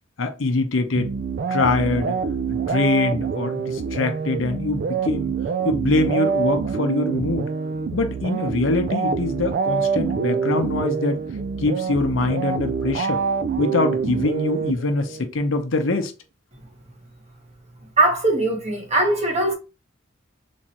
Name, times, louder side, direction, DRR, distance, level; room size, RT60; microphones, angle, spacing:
voice 1, 0.2-1.1 1.5-2.2 2.5-5.3 5.6-7.5 7.9-11.2 11.6-13.2 13.6-16.1, left 3 dB, 85° left, 0.7 m, -23 dB
sound 1, 0.9-15.3, right 5 dB, 50° right, 0.3 m, -26 dB
voice 2, 18.0-19.5, right 2 dB, 35° right, 1.2 m, -20 dB
3.6 x 3.1 x 2.8 m
head